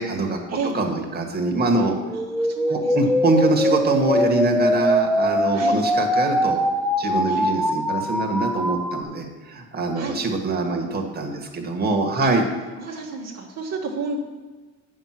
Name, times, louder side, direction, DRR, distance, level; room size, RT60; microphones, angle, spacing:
voice 1, 0.0-1.9 2.7-6.6 7.0-12.4, right 2 dB, 30° right, 1 dB, 1.9 m, -24 dB
sound 1, 2.1-9.0, equal, ahead, 0.6 m, -22 dB
voice 2, 2.1-3.1 5.5-5.8 7.3-7.4 9.9-10.2 12.2-12.3 12.8-14.2, right 4 dB, 60° right, -2 dB, 1.5 m, -31 dB
8.7 x 6.5 x 6.0 m, 1.3 s
cardioid pair, 90°, 30 cm